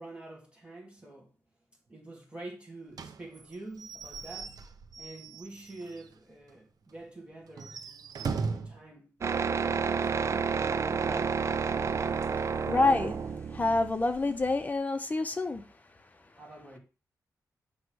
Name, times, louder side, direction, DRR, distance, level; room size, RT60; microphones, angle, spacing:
voice 1, 0.0-1.3 1.9-4.6 5.0-7.9 8.2-9.9 10.2-10.4 11.0-11.4 14.2-14.5 16.3-16.8, right 2 dB, 15° right, 2.0 m, -46 dB
Slam / Squeak / Wood, 2.9-6.1 6.5-6.6 6.9-7.0 7.5-8.8, right 5 dB, 70° right, 0.7 m, -38 dB
sound 1, 9.2-14.6, right 5 dB, 45° right, 0.4 m, -30 dB
voice 2, 12.3-13.2 13.5-15.7, left 3 dB, 25° left, 0.9 m, -28 dB
9.3 x 3.1 x 6.3 m
wide cardioid pair, 135°, 7 cm